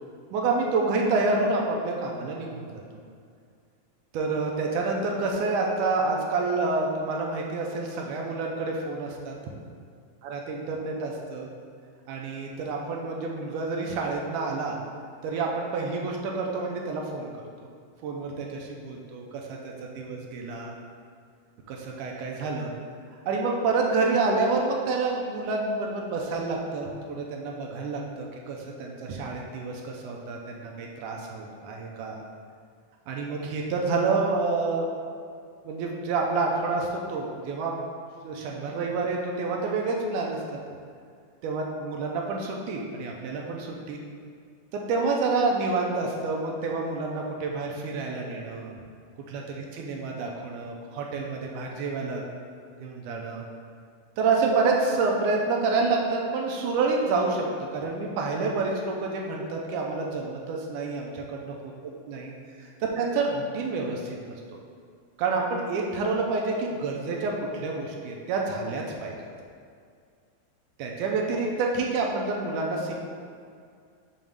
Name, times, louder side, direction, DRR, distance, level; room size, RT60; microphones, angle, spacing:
voice 1, 0.3-2.8 4.1-9.3 10.2-11.5 12.1-14.8 15.2-17.4 18.0-20.7 21.7-22.7 23.3-32.2 33.1-34.9 35.6-37.7 38.2-40.4 41.4-44.0 44.7-48.7 49.3-52.2 52.8-53.4 54.2-57.5 57.7-61.6 62.1-62.3 62.8-64.6 65.2-69.1 70.8-72.9, right 3 dB, 80° right, 0 dB, 2.0 m, -28 dB
7.1 x 3.1 x 5.2 m, 2.2 s
omnidirectional pair, 4.0 m